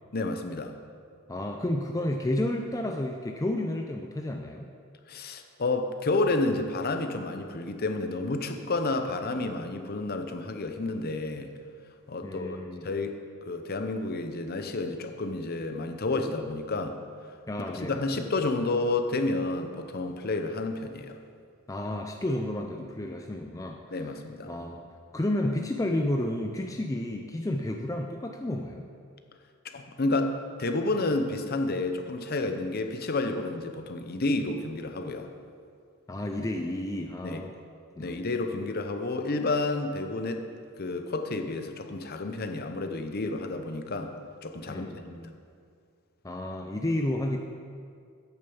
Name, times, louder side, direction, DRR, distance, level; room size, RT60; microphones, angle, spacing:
voice 1, 0.1-0.7 5.1-11.5 12.1-13.2 13.5-17.0 17.7-21.1 23.9-24.5 29.7-35.3 37.2-37.4 38.0-40.4 40.8-44.1 44.4-44.9, left 2 dB, 45° left, 6 dB, 0.7 m, -30 dB
voice 2, 1.3-4.7 12.2-12.9 17.5-18.2 21.7-24.2 24.5-24.8 25.1-28.9 36.1-37.5 38.0-38.2 44.7-45.4 46.2-47.4, left 1 dB, 15° left, 3 dB, 0.4 m, -31 dB
8.9 x 6.9 x 7.0 m, 2.3 s
head